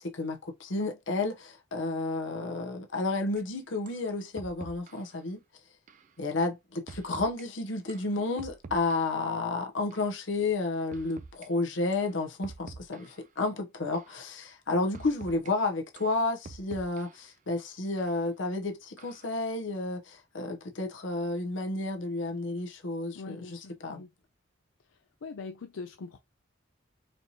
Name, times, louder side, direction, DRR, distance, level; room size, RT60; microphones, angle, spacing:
voice 1, 0.0-5.4 6.2-24.1, left 3 dB, 70° left, 0.8 m, -31 dB
sound 1, 3.4-3.5 3.9-4.0 4.4-5.1 5.9-6.1 6.9-7.4 7.9-9.3 9.9-10.1 10.9-11.5 11.9-12.1 12.4-13.3 13.9-14.2 14.9-15.5 16.0-17.3 18.0-18.1 19.0-19.4, right 4 dB, 40° right, 0.4 m, -47 dB
voice 2, 23.1-24.1 25.2-26.2, left 4 dB, 85° left, 0.5 m, -42 dB
4.3 x 2.8 x 2.9 m
head